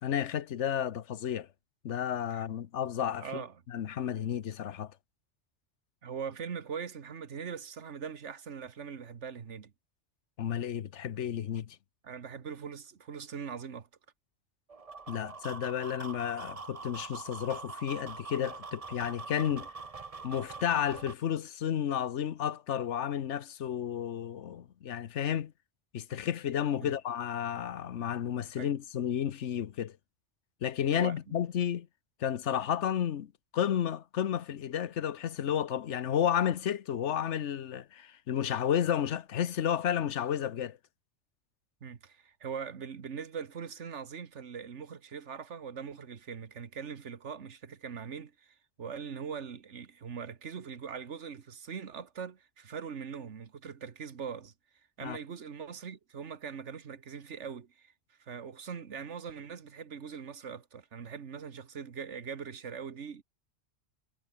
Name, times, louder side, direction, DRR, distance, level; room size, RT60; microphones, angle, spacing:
voice 1, 0.0-1.5 1.8-3.3 3.7-4.9 10.4-11.8 15.1-19.7 20.2-25.5 25.9-29.9 30.6-31.9 32.2-40.8 55.0-55.2, left 9 dB, 85° left, 1.2 m, -32 dB
voice 2, 3.2-3.6 6.0-9.7 12.0-13.9 26.8-27.0 28.6-28.7 30.9-31.2 41.8-54.5 55.0-57.9 58.2-63.2, right 6 dB, 85° right, 1.7 m, -41 dB
sound 1, 14.7-21.1, right 4 dB, 35° right, 1.1 m, -44 dB
omnidirectional pair, 1.2 m